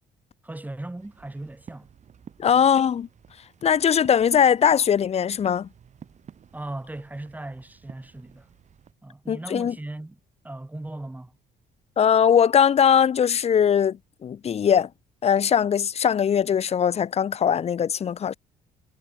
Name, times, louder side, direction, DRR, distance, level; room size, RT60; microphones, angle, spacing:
voice 1, 0.4-1.9 2.4-2.6 6.5-8.5 9.0-10.2 10.4-11.3, right 2 dB, 10° right, 7.7 m, -37 dB
sound 1, 1.0-8.9, right 8 dB, 45° right, 4.9 m, -52 dB
voice 2, 2.4-3.1 3.6-5.7 9.3-9.7 12.0-14.9 15.2-18.3, left 8 dB, 40° left, 0.9 m, -20 dB
cardioid pair, 110°, 17 cm